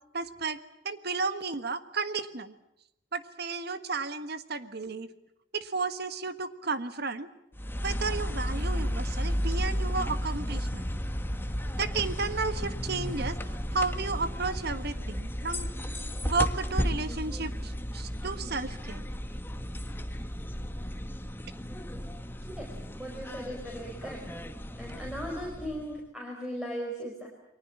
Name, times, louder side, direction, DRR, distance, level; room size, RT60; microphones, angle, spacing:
voice 1, 0.1-0.6 0.8-2.5 3.1-5.1 5.5-7.3 7.8-10.9 11.8-15.7 16.2-19.0, right 4 dB, 60° right, 11 dB, 1.5 m, -33 dB
sound 1, 7.5-26.0, equal, 10° left, 1.5 m, -33 dB
voice 2, 23.0-24.2 24.8-27.3, equal, 5° right, -1 dB, 4.8 m, -37 dB
29.5 x 23.0 x 7.3 m, 0.80 s
head